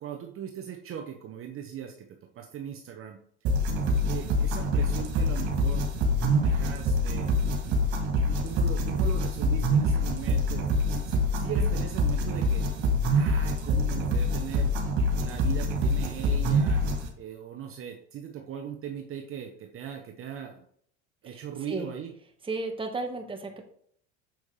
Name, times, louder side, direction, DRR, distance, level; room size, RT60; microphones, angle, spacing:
voice 1, 0.0-3.2 4.0-5.9 6.2-7.8 8.2-12.6 13.0-14.8 15.1-16.8 17.2-20.6 21.2-22.1, right 9 dB, 40° right, 3 dB, 1.0 m, -39 dB
sound 1, 3.4-17.1, equal, 55° right, 2.5 m, -25 dB
voice 2, 21.3-21.9 22.4-23.6, right 3 dB, 15° right, 4 dB, 1.5 m, -34 dB
7.2 x 6.1 x 3.4 m, 0.62 s
hypercardioid pair, 95°, 35 cm